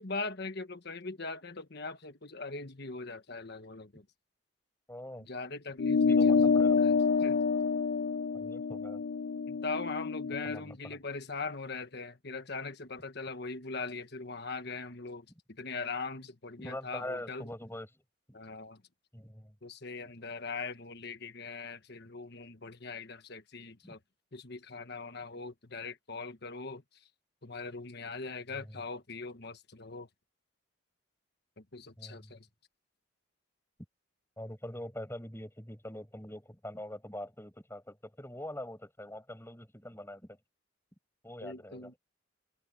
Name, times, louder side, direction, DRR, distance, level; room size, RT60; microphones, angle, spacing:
voice 1, 0.0-4.1 5.2-6.9 7.2-7.4 9.5-17.5 18.3-18.8 19.6-24.0 24.3-26.8 27.4-30.1 31.6-32.5 41.4-41.9, left 3 dB, 55° left, 1.4 m, -41 dB
voice 2, 4.9-5.3 6.1-6.8 8.3-9.0 10.4-11.0 16.6-18.0 18.3-18.4 19.1-19.5 23.8-24.0 28.5-28.8 32.0-32.3 34.4-40.4 41.2-41.9, left 1 dB, 10° left, 7.7 m, -44 dB
sound 1, 5.8-10.6, left 5 dB, 75° left, 0.5 m, -27 dB
head